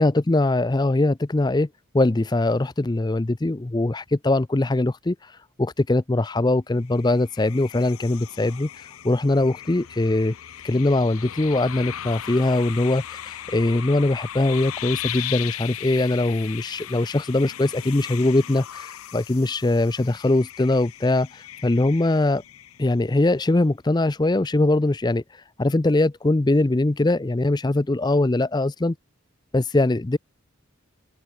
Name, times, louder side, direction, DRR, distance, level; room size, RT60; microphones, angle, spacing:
voice 1, 0.0-1.7 1.9-5.2 5.6-8.7 9.0-10.3 10.6-22.4 22.8-25.2 25.6-28.9 29.5-30.2, left 2 dB, 20° left, 0.5 m, -21 dB
sound 1, 6.9-23.1, left 12 dB, 80° left, 0.6 m, -37 dB
open air
head